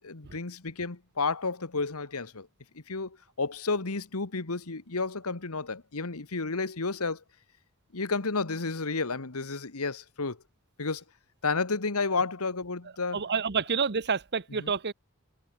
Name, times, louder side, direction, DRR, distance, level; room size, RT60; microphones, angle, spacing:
voice 1, 0.0-2.5 2.7-7.2 7.9-10.4 10.8-11.0 11.4-13.3 14.6-14.7, left 4 dB, 80° left, 1.6 m, -31 dB
voice 2, 13.1-14.9, right 5 dB, 50° right, 1.0 m, -28 dB
head